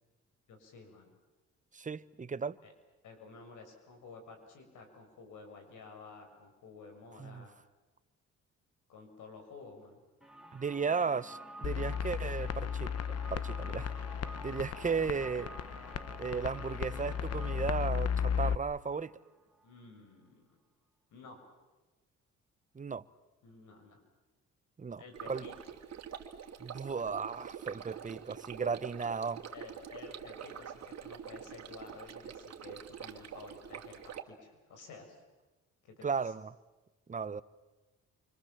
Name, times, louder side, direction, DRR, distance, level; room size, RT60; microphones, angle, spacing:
voice 1, 0.5-1.2 2.6-2.7 3.0-7.5 8.9-10.0 19.6-20.4 21.1-21.4 23.4-24.0 25.0-25.5 29.0-29.1 29.5-35.2 35.8-36.3, left 4 dB, 80° left, 7.1 m, -52 dB
voice 2, 1.7-2.6 7.2-7.4 10.5-12.9 13.3-13.9 14.4-15.5 16.2-19.2 22.7-23.0 24.8-25.5 26.6-29.4 36.0-36.5 37.1-37.4, right 5 dB, 25° right, 1.0 m, -35 dB
sound 1, 10.2-19.9, right 1 dB, ahead, 3.2 m, -50 dB
sound 2, 11.6-18.5, left 7 dB, 55° left, 1.1 m, -35 dB
Stream, 25.1-34.2, right 8 dB, 55° right, 2.7 m, -46 dB
29.0 x 25.5 x 7.4 m
cardioid pair, 90°, 30 cm